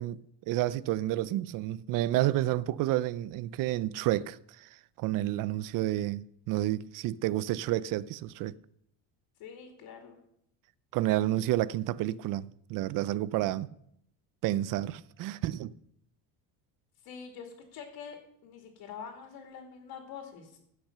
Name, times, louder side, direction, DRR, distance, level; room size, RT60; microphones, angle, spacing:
voice 1, 0.0-4.7 5.0-8.5 10.9-13.7 14.4-15.7, right 14 dB, 55° right, 0.5 m, -30 dB
voice 2, 9.4-10.2 17.0-20.6, left 6 dB, 65° left, 2.6 m, -45 dB
15.5 x 6.0 x 6.7 m
cardioid pair, 145°, 40 cm